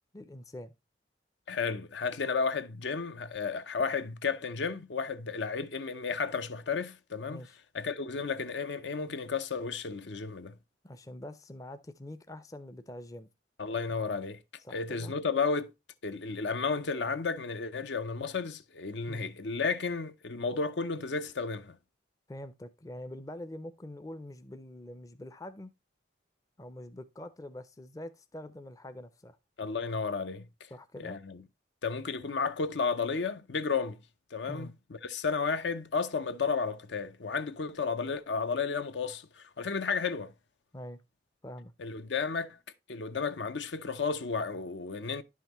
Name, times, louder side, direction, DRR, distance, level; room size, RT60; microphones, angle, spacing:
voice 1, 0.1-0.7 7.3-7.6 10.8-13.3 14.6-15.1 19.1-19.3 22.3-25.7 26.6-29.4 30.7-31.2 34.5-34.7 40.7-41.0 41.4-41.7, left 1 dB, 20° left, 0.4 m, -44 dB
voice 2, 1.5-7.5 7.7-10.5 13.6-14.4 14.7-15.7 16.0-21.8 29.6-30.7 31.0-31.4 31.8-34.0 34.3-34.7 35.0-40.3 41.8-42.6 42.9-45.2, left 5 dB, 75° left, 0.6 m, -33 dB
10.5 x 5.7 x 3.0 m
head